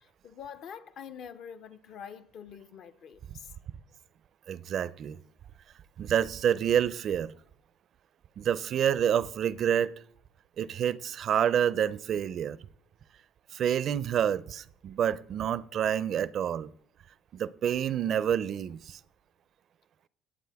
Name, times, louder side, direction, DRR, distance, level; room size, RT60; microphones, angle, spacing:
voice 1, 0.0-3.5, left 7 dB, 50° left, 0.6 m, -45 dB
voice 2, 4.5-5.2 6.0-7.3 8.4-9.9 10.6-12.6 13.5-16.7 17.3-19.0, right 9 dB, 40° right, 0.4 m, -28 dB
17.0 x 8.3 x 3.4 m
cardioid pair, 160°, 0 cm